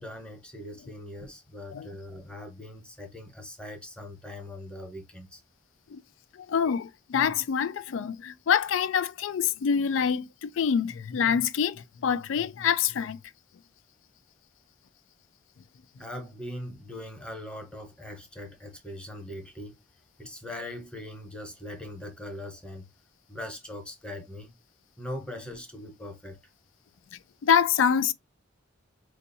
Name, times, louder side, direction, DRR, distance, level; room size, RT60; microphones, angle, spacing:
voice 1, 0.0-5.4 16.0-19.8 20.2-22.9 23.3-24.5 25.0-26.4, left 1 dB, 5° left, 0.9 m, -41 dB
voice 2, 6.5-13.2 27.4-28.1, left 7 dB, 90° left, 0.4 m, -26 dB
4.5 x 2.7 x 2.6 m
head